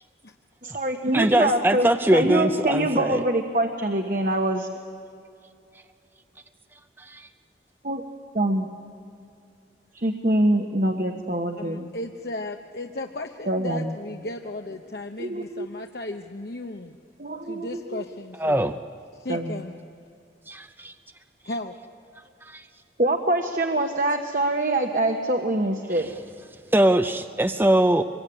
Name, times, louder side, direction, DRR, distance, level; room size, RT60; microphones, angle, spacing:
voice 1, 0.6-4.7 7.8-8.0 8.3-8.7 9.9-11.9 13.5-13.9 15.2-15.7 17.2-18.0 19.3-19.6 23.0-26.1, right 1 dB, 45° right, 4 dB, 1.3 m, -24 dB
voice 2, 1.1-3.2 7.0-7.3 18.4-18.8 20.5-20.9 22.4-22.6 25.9-26.0 26.7-28.0, right 1 dB, 10° right, 9 dB, 0.5 m, -22 dB
voice 3, 11.6-16.9 17.4-18.7 19.2-19.8 21.4-21.8, left 2 dB, 60° left, 4 dB, 0.9 m, -35 dB
25.0 x 22.5 x 9.9 m, 2.5 s
head